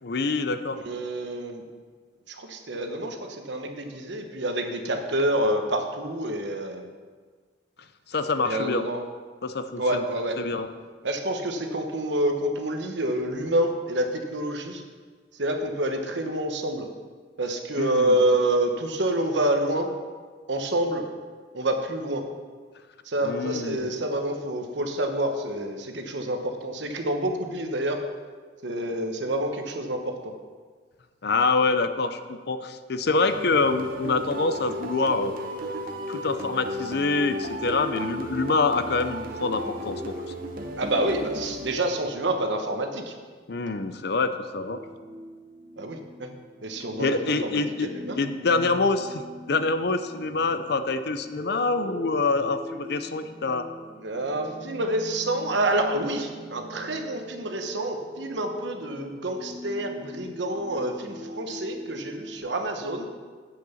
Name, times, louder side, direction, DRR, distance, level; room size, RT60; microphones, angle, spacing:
voice 1, 0.0-0.8 8.1-8.8 9.4-10.0 10.4-10.7 17.8-18.2 23.2-23.9 31.2-35.3 36.1-40.1 43.5-44.8 47.0-53.6, left 3 dB, 60° left, 10 dB, 0.6 m, -26 dB
voice 2, 0.8-1.6 2.3-6.8 8.4-9.0 9.8-10.4 11.0-14.8 15.4-16.9 17.4-19.9 20.5-21.0 21.5-22.2 23.1-28.0 28.6-30.3 40.8-43.1 45.8-46.3 46.6-48.2 54.0-63.1, right 1 dB, 70° right, 5 dB, 1.1 m, -28 dB
sound 1, 33.3-42.2, equal, 50° right, 1.0 m, -34 dB
sound 2, 44.6-62.4, equal, 5° left, 1.8 m, -42 dB
7.9 x 6.6 x 7.0 m, 1.5 s
head